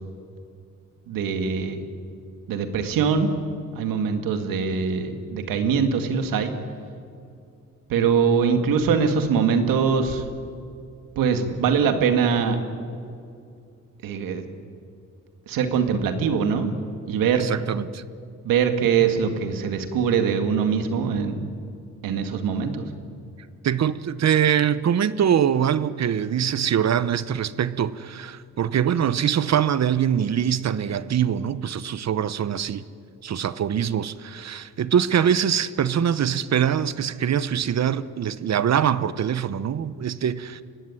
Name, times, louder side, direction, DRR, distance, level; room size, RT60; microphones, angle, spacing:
voice 1, 1.1-1.8 2.5-3.3 3.8-6.5 7.9-10.2 11.2-12.6 14.0-14.4 15.5-16.7 17.1-17.5 18.4-21.3 22.0-22.8, right 6 dB, 90° right, 7 dB, 2.2 m, -22 dB
voice 2, 17.3-18.0 23.6-32.8 33.2-40.6, right 9 dB, 55° right, 16 dB, 1.0 m, -23 dB
24.0 x 16.5 x 9.9 m, 2.4 s
cardioid pair, 80°, 33 cm